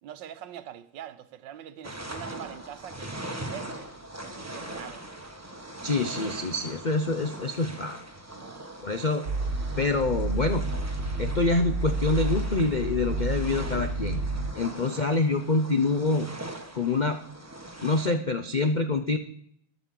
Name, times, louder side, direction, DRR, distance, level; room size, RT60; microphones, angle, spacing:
voice 1, 0.0-5.1 8.3-8.6 14.5-14.8, right 10 dB, 85° right, 1.5 m, -44 dB
sound 1, 1.8-18.1, right 1 dB, 10° right, 1.1 m, -41 dB
voice 2, 5.8-8.0 8.8-9.3 9.8-10.6 11.2-14.2 14.5-16.3 16.7-17.2 17.8-19.2, left 3 dB, 75° left, 0.4 m, -26 dB
sound 2, 9.2-14.5, right 3 dB, 45° right, 1.5 m, -30 dB
11.0 x 8.1 x 7.5 m
omnidirectional pair, 1.9 m